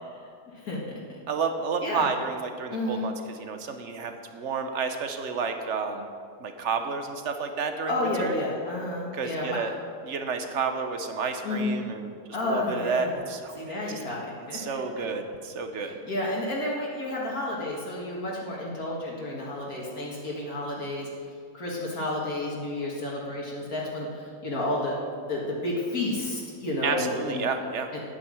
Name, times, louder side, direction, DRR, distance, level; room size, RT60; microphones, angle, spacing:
voice 1, 0.5-1.0 1.8-2.1 2.7-3.0 7.9-9.6 11.4-11.8 12.3-13.2 13.5-14.6 16.0-21.1 21.5-25.0 25.3-27.5, left 1 dB, 60° left, -4 dB, 2.2 m, -31 dB
voice 2, 1.3-6.1 6.4-8.3 9.1-9.7 10.0-12.1 12.4-13.8 14.5-16.0 26.8-27.9, right 5 dB, 50° right, 6 dB, 1.1 m, -31 dB
10.0 x 9.0 x 6.2 m, 2.3 s
omnidirectional pair, 1.7 m